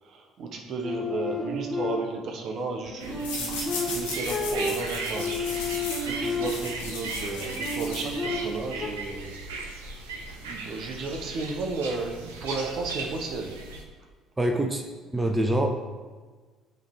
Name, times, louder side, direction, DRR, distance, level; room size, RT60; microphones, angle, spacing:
voice 1, 0.0-5.6 6.0-9.4 9.9-10.1 10.3-13.6, right 3 dB, 55° right, 3 dB, 0.8 m, -34 dB
sound 1, 0.8-2.3 2.9-6.9 7.4-8.9, left 2 dB, 40° left, 1.5 m, -32 dB
sound 2, 3.0-13.8, right 3 dB, 80° right, 0.6 m, -37 dB
sound 3, 3.2-8.5, left 4 dB, 80° left, 1.1 m, -37 dB
voice 2, 14.4-14.8 15.1-16.0, right 1 dB, 20° right, 4 dB, 0.6 m, -25 dB
8.7 x 3.2 x 3.5 m, 1.4 s
hypercardioid pair, 55°, 0 cm